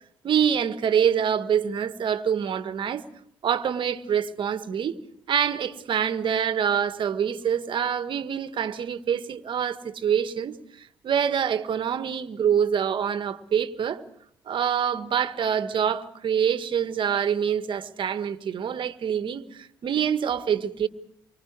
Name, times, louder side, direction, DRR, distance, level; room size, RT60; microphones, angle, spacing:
voice 1, 0.2-3.0 3.4-5.0 5.3-14.0 14.5-20.9, right 8 dB, 55° right, 1.6 m, -25 dB
29.5 x 24.5 x 4.7 m
hypercardioid pair, 45°, 10 cm